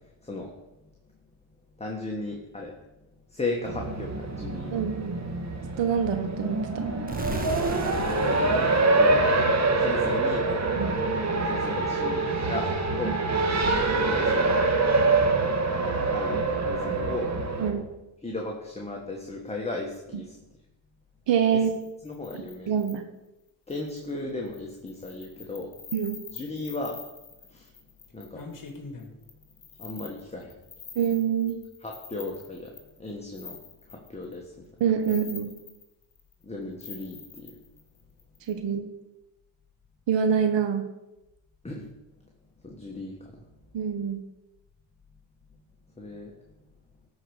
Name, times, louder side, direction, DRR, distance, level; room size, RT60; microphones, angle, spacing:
voice 1, 1.8-2.7 3.3-4.8 7.7-9.2 9.8-10.7 11.5-14.6 15.4-15.6 16.1-17.3 17.7-17.8 18.2-20.3 21.5-21.6 22.0-22.7 23.7-25.7 26.3-27.0 27.5-27.7 28.1-28.4 29.8-30.5 31.8-32.7 33.0-33.6 33.9-34.5 35.1-35.2 36.4-37.5 41.6-41.8 42.6-43.1 46.0-46.3, left 2 dB, 15° left, 0 dB, 1.5 m, -36 dB
Race car auto racing, 3.6-17.7, right 3 dB, 35° right, 1.7 m, -25 dB
voice 2, 4.7-5.2 5.8-6.9 10.7-10.9 13.0-13.2 17.6-17.8 21.3-21.7 22.7-23.0 25.9-26.2 30.9-31.6 34.8-35.5 38.5-38.9 40.1-40.8 43.7-44.2, right 7 dB, 60° right, 7 dB, 1.2 m, -25 dB
sound 1, 7.1-9.9, right 2 dB, 15° right, 1.5 m, -38 dB
sound 2, 21.6-23.0 23.7-24.1 24.5-34.4 34.8-36.4 36.8-38.5, left 5 dB, 40° left, 2.2 m, -45 dB
12.5 x 4.8 x 6.5 m, 0.99 s
cardioid pair, 85°, 49 cm